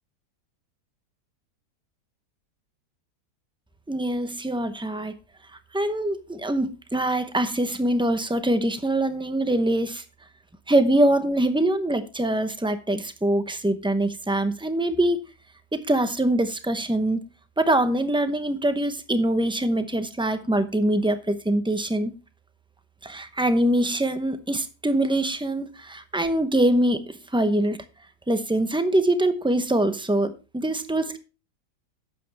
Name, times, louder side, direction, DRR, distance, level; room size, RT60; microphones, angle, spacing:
voice 1, 3.9-5.1 5.7-10.0 10.7-15.2 15.7-17.2 17.6-22.1 23.0-27.8 28.3-31.2, right 1 dB, 5° right, 0.4 m, -23 dB
11.5 x 8.5 x 3.4 m
omnidirectional pair, 1.8 m